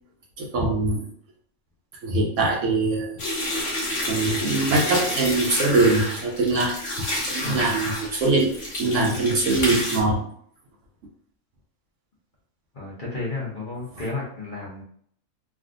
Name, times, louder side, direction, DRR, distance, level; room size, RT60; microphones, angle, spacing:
voice 1, 0.4-1.0 2.0-3.2 4.1-6.8 7.3-8.5 8.8-10.3, right 2 dB, 65° right, -1 dB, 0.9 m, -22 dB
sound 1, 3.2-10.0, left 1 dB, 60° left, 1.2 m, -29 dB
voice 2, 7.4-7.9 12.7-14.8, left 3 dB, 40° left, -5 dB, 0.8 m, -32 dB
3.4 x 2.4 x 2.5 m, 0.62 s
omnidirectional pair, 1.5 m